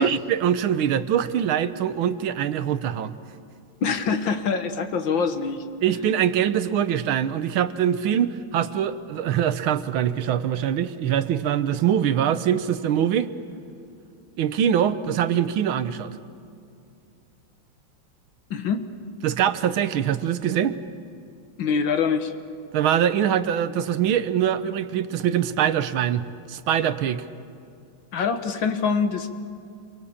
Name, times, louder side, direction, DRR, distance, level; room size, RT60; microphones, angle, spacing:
voice 1, 0.0-3.1 5.8-13.3 14.4-16.2 19.2-20.8 22.7-27.2, right 9 dB, 80° right, 12 dB, 1.7 m, -23 dB
voice 2, 3.8-5.6 18.5-18.9 21.6-22.3 28.1-29.3, left 5 dB, 70° left, 8 dB, 2.0 m, -24 dB
28.0 x 23.5 x 7.2 m, 2.5 s
omnidirectional pair, 2.2 m